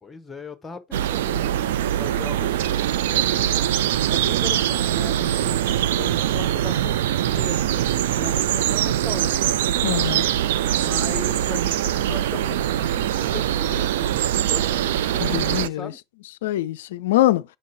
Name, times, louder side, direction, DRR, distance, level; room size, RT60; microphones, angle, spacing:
voice 1, 0.0-3.6 4.1-5.6 6.0-7.9 8.2-9.5 10.7-16.0, left 3 dB, 10° left, 0.8 m, -38 dB
sound 1, 0.9-15.7, right 11 dB, 55° right, 0.3 m, -22 dB
voice 2, 9.8-10.3 15.2-15.9 16.4-17.4, left 15 dB, 55° left, 0.4 m, -23 dB
6.7 x 5.2 x 3.3 m
figure-of-eight pair, 90°, 0 cm